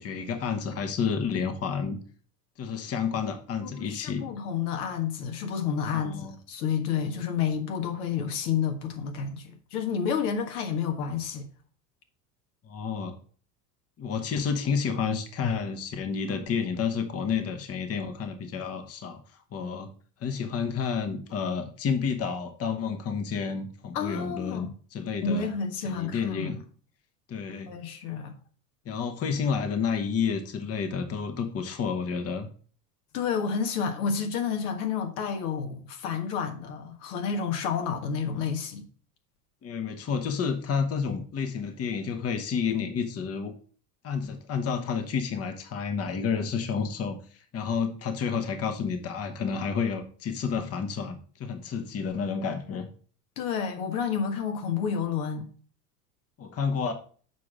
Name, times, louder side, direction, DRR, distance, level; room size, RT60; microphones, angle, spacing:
voice 1, 0.0-2.0 2.6-4.3 5.9-6.3 12.6-13.1 14.0-19.2 19.5-19.9 20.2-25.5 25.8-26.6 27.3-27.7 28.8-32.5 39.6-43.5 44.0-52.9 56.4-56.9, left 6 dB, 30° left, 1.1 m, -30 dB
voice 2, 3.6-11.5 23.9-24.7 25.2-26.6 27.7-28.3 33.1-38.8 53.4-55.5, left 6 dB, 70° left, 1.5 m, -30 dB
7.2 x 4.8 x 4.9 m
hypercardioid pair, 80°, 46 cm